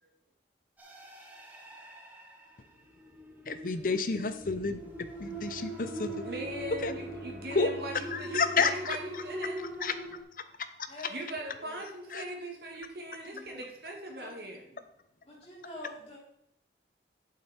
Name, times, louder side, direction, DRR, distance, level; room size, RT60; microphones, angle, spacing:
sound 1, 0.8-10.2, right 1 dB, 10° right, 1.4 m, -42 dB
voice 1, 3.5-6.3 6.8-6.9 7.5-7.7 8.1-9.0 9.8-9.9 12.1-12.2, left 4 dB, 50° left, 11 dB, 0.7 m, -30 dB
Bowed string instrument, 5.2-10.2, left 1 dB, 70° left, 1.1 m, -50 dB
voice 2, 6.2-9.7 11.1-14.7, right 1 dB, 60° right, 0 dB, 2.2 m, -40 dB
voice 3, 10.9-11.8 13.3-13.6 14.2-14.8 15.2-16.2, left 1 dB, 35° left, -6 dB, 4.3 m, -47 dB
8.8 x 7.6 x 4.4 m, 0.73 s
head